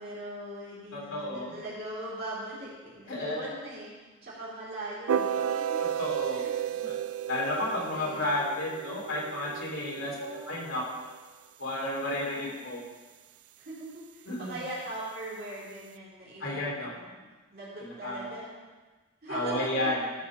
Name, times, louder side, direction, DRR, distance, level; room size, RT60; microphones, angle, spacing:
voice 1, 0.0-5.8 6.3-6.5 7.9-8.4 10.0-10.6 12.2-12.8 13.6-17.2 17.5-18.6 19.2-19.9, right 1 dB, 45° right, -8 dB, 2.9 m, -41 dB
voice 2, 0.9-1.5 3.1-3.4 6.0-6.4 6.8-6.9 7.3-10.1 10.5-10.8 11.6-12.8 14.3-14.6 16.4-16.9 17.8-18.3 19.3-20.1, left 1 dB, 70° left, -3 dB, 3.3 m, -32 dB
sound 1, 5.1-11.2, right 8 dB, 85° right, 0.4 m, -33 dB
13.5 x 5.7 x 6.2 m, 1.3 s
head